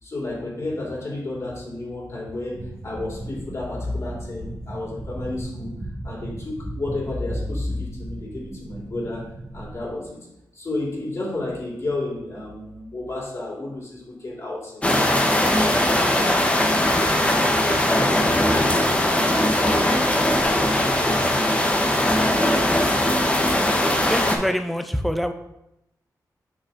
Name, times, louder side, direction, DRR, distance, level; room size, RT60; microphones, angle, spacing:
voice 1, 0.0-5.7 6.0-9.3 9.5-10.2 10.5-20.0 20.3-21.4 22.1-22.2, left 2 dB, 45° left, -3 dB, 2.2 m, -32 dB
sound 1, 2.5-9.9, right 2 dB, 35° right, 1.5 m, -37 dB
sound 2, 14.8-24.4, left 1 dB, 20° left, 0.8 m, -20 dB
voice 2, 24.1-25.3, equal, ahead, 7 dB, 0.5 m, -25 dB
7.1 x 5.5 x 2.6 m, 0.86 s
cardioid pair, 80°, 7 cm